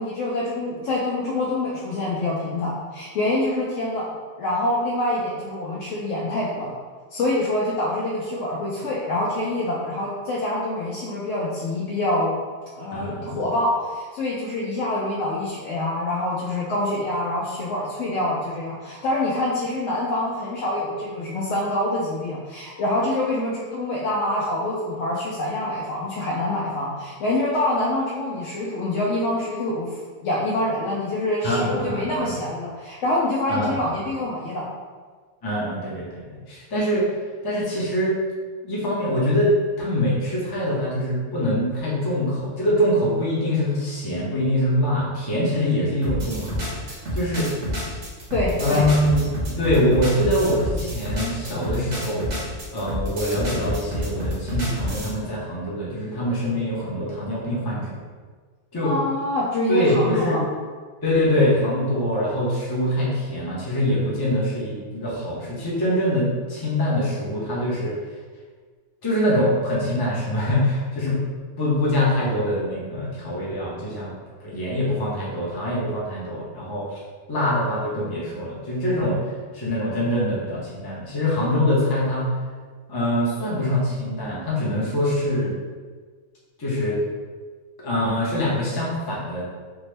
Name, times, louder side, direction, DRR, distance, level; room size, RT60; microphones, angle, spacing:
voice 1, 0.0-4.0 4.4-6.7 7.1-12.3 12.7-30.0 30.2-34.6 48.3-48.9 58.8-60.4, left 1 dB, 80° left, -6 dB, 0.9 m, -25 dB
voice 2, 12.9-13.4 31.4-32.4 33.5-33.9 35.4-37.1 37.4-38.2 38.6-47.5 48.6-52.3 52.7-58.0 58.7-58.9 59.7-60.4 61.0-68.0 69.0-71.2 71.6-74.1 74.4-77.0 77.3-79.3 79.5-82.3 82.9-85.6 86.6-87.0 87.8-89.4, left 1 dB, 25° left, -6 dB, 0.6 m, -24 dB
sound 1, 46.0-55.1, equal, 65° right, 1.2 m, -28 dB
3.5 x 2.0 x 3.2 m, 1.5 s
omnidirectional pair, 1.3 m